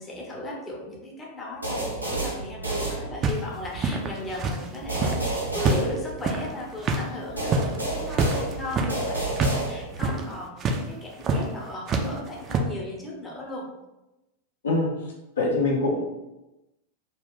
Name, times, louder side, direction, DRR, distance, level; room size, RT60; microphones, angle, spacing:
voice 1, 0.0-13.7, left 2 dB, 15° left, -3 dB, 0.6 m, -36 dB
sound 1, 1.6-3.6 4.9-6.6 7.4-10.1, right 2 dB, 85° right, 0.6 m, -30 dB
sound 2, 3.2-5.2 5.6-9.6 9.9-10.3 10.6-10.8 11.2-11.5 11.9-12.6, right 3 dB, 30° right, 0.4 m, -26 dB
voice 2, 15.4-16.0, left 2 dB, 65° left, -2 dB, 0.5 m, -23 dB
2.3 x 2.3 x 3.4 m, 0.97 s
figure-of-eight pair, 90°, 0 cm